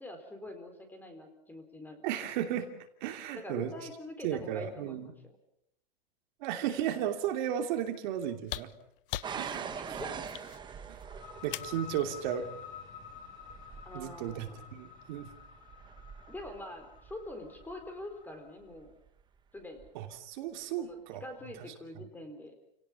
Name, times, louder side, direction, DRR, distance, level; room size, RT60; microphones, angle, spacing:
voice 1, 0.0-2.1 3.3-5.3 9.7-10.2 13.9-14.7 16.3-18.9 19.5-19.9 20.6-22.5, left 1 dB, 5° left, 6 dB, 4.0 m, -45 dB
voice 2, 2.0-2.7 3.0-3.7 4.2-5.1 6.4-8.7 9.4-10.0 10.9-11.0 11.4-12.5 13.9-15.3 19.9-21.2, right 10 dB, 50° right, 5 dB, 3.0 m, -34 dB
sound 1, 8.4-11.9 13.3-13.4, left 13 dB, 65° left, 0.9 m, -41 dB
sound 2, 9.2-18.0 18.8-19.2 19.8-19.9, right 7 dB, 15° right, 1.5 m, -45 dB
sound 3, 11.0-18.5, left 7 dB, 30° left, 3.2 m, -50 dB
30.0 x 18.0 x 7.2 m, 0.77 s
supercardioid pair, 150°, 30 cm